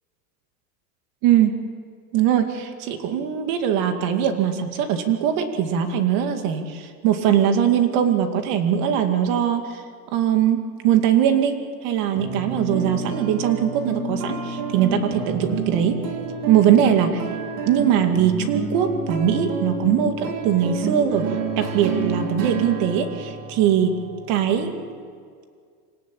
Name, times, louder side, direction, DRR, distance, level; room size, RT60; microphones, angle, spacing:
voice 1, 1.2-1.6 2.1-9.8 10.1-11.5 11.8-15.9 16.5-17.2 17.6-21.2 21.6-23.9 24.3-24.8, right 9 dB, 45° right, 6 dB, 2.3 m, -21 dB
sound 1, 12.2-24.9, right 5 dB, 80° right, 5.1 m, -29 dB
26.0 x 18.0 x 8.5 m, 2.1 s
supercardioid pair, 165°, 47 cm